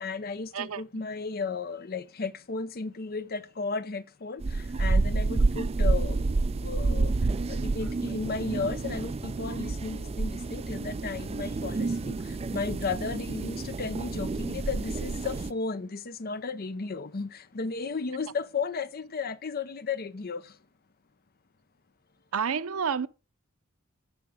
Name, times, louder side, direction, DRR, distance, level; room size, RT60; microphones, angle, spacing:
voice 1, 0.0-4.4 4.8-6.2 6.6-7.1 7.5-12.1 12.5-17.3 17.5-20.4, left 4 dB, 45° left, 0.7 m, -34 dB
sound 1, 4.4-15.5, right 3 dB, 30° right, 0.4 m, -29 dB
voice 2, 22.3-23.1, right 6 dB, 90° right, 0.6 m, -29 dB
10.5 x 6.9 x 5.0 m
head